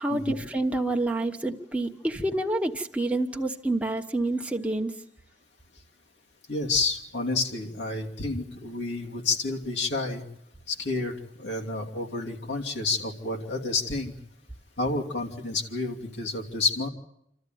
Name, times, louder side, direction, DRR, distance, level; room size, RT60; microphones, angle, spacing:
voice 1, 0.0-4.9, right 2 dB, 10° right, 2 dB, 1.1 m, -28 dB
voice 2, 6.5-10.2 10.7-14.1 14.8-16.9, left 3 dB, 80° left, 0 dB, 2.9 m, -29 dB
28.0 x 13.5 x 9.3 m, 0.79 s
head